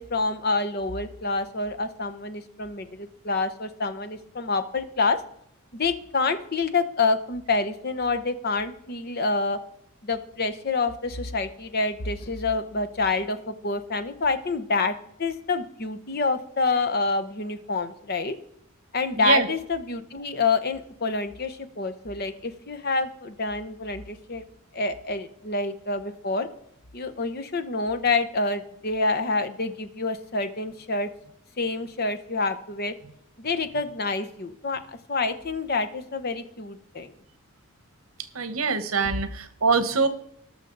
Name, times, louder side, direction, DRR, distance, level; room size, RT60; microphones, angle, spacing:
voice 1, 0.0-5.2 5.7-9.6 10.0-18.4 18.9-24.4 24.7-26.5 26.9-31.1 31.6-32.9 33.4-37.1, left 3 dB, 45° left, 8 dB, 0.9 m, -27 dB
voice 2, 19.2-19.5 38.3-40.1, right 5 dB, 80° right, 11 dB, 1.2 m, -23 dB
19.0 x 6.4 x 3.9 m, 0.71 s
head